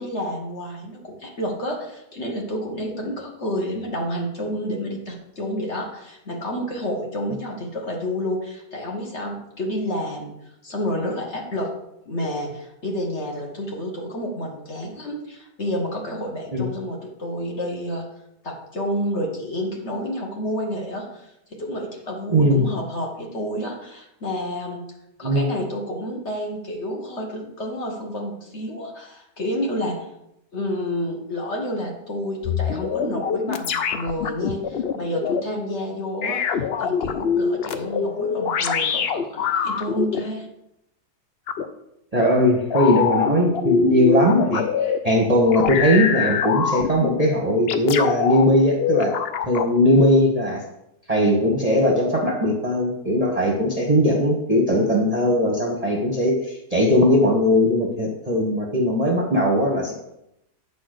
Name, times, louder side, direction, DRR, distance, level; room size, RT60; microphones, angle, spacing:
voice 1, 0.0-10.3 10.6-11.8 12.1-18.1 18.4-24.9 25.2-30.1 30.5-40.5, equal, 45° left, 0 dB, 1.7 m, -29 dB
voice 2, 22.3-22.6 25.2-25.4 42.1-49.2 49.5-50.6 51.1-59.9, equal, 25° right, -1 dB, 1.0 m, -19 dB
sound 1, 32.4-35.4 36.2-40.2 41.5-41.6 42.7-45.0 45.5-47.2 47.7-48.4 48.8-49.7, left 7 dB, 65° left, 0.6 m, -24 dB
9.4 x 4.1 x 6.5 m, 0.84 s
omnidirectional pair, 1.7 m